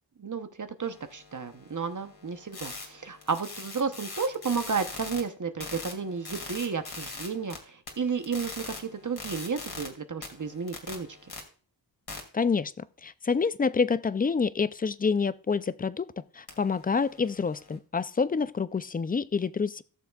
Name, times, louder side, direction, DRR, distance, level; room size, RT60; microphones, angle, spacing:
voice 1, 0.2-11.1, right 5 dB, 45° right, 0.8 m, -32 dB
sound 1, 0.8-5.2 5.6-7.6 7.9-9.9 10.2-11.4 12.1-12.2 16.5-17.8, left 3 dB, 60° left, 2.1 m, -42 dB
voice 2, 12.3-12.7 13.0-19.8, left 5 dB, 20° left, 0.3 m, -27 dB
16.5 x 7.0 x 2.3 m
wide cardioid pair, 95°, 44 cm